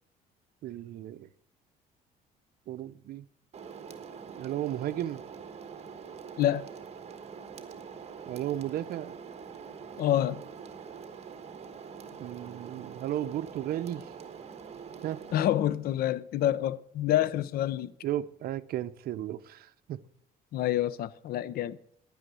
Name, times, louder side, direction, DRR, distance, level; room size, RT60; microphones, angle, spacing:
voice 1, 0.6-1.3 2.7-3.2 4.3-5.2 8.3-9.2 12.2-14.0 15.0-15.2 18.0-20.0, right 12 dB, 65° right, 0.6 m, -34 dB
sound 1, 3.5-15.5, right 6 dB, 40° right, 1.3 m, -45 dB
voice 2, 6.4-6.7 10.0-10.4 15.3-17.9 20.5-21.8, left 12 dB, 65° left, 0.6 m, -27 dB
10.0 x 9.4 x 6.2 m
cardioid pair, 110°, 17 cm